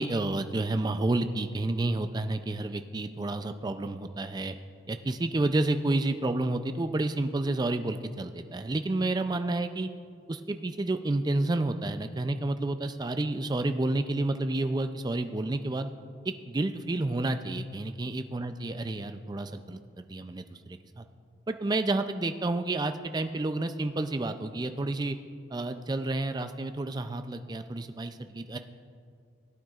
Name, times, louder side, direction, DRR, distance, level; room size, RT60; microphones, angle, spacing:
voice 1, 0.0-4.6 4.9-9.9 10.3-15.9 16.2-21.0 21.5-25.2 25.5-28.6, right 2 dB, 20° right, 8 dB, 0.3 m, -30 dB
18.5 x 9.1 x 2.4 m, 2.2 s
head